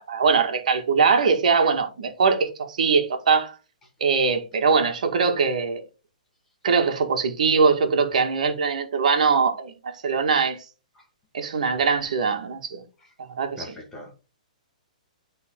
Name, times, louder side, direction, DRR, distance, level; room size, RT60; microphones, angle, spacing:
voice 1, 0.0-3.5 4.0-5.8 6.6-10.6 11.3-12.8 13.4-13.7, right 5 dB, 65° right, 1.9 m, -22 dB
voice 2, 13.6-14.2, left 1 dB, 10° left, 1.8 m, -41 dB
11.0 x 4.1 x 3.7 m
hypercardioid pair, 170°, 4 cm